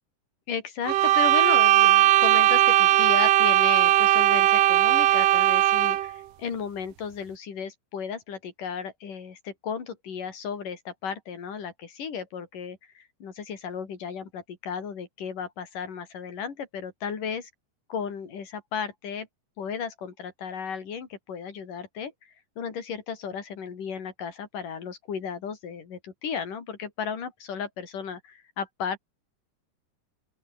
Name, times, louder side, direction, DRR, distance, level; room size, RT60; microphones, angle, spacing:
voice 1, 0.5-17.5 17.9-19.3 19.6-29.0, left 6 dB, 85° left, 5.2 m, -34 dB
sound 1, 0.9-6.1, right 13 dB, 85° right, 2.8 m, -19 dB
open air
omnidirectional pair, 3.7 m